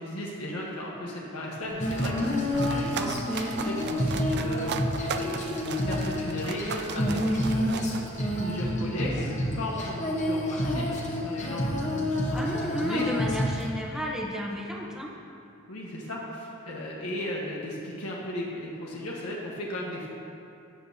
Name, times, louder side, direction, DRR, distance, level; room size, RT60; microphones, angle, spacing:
voice 1, 0.0-4.7 5.1-8.0 8.3-13.1 15.7-20.1, left 1 dB, 85° left, -4 dB, 1.3 m, -35 dB
sound 1, 1.6-8.6, right 6 dB, 50° right, 0.4 m, -38 dB
Female singing, 1.8-13.7, equal, 35° left, 1.1 m, -29 dB
voice 2, 12.3-15.2, equal, 5° right, -1 dB, 0.9 m, -32 dB
13.5 x 8.6 x 2.8 m, 2.7 s
head